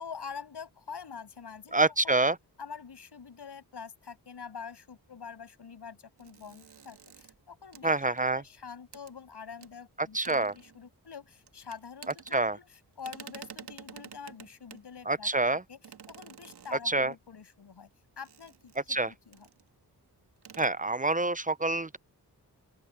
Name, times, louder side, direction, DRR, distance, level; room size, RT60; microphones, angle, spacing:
voice 1, 0.0-2.2 2.6-15.8 16.1-17.9 18.2-19.5, left 6 dB, 80° left, 7.5 m, -46 dB
voice 2, 1.7-2.4 7.8-8.4 10.0-10.5 12.3-12.6 15.1-15.6 16.7-17.1 18.9-19.1 20.6-22.0, right 2 dB, 20° right, 0.6 m, -27 dB
sound 1, 6.2-8.5 8.9-9.1 9.6-9.7 10.1-11.1 11.4-12.7 13.0-14.9 15.8-17.1 18.2-19.0 19.3-19.7 19.9-20.0 20.3-20.7, right 7 dB, 75° right, 1.7 m, -50 dB
open air
cardioid pair, 50°, 40 cm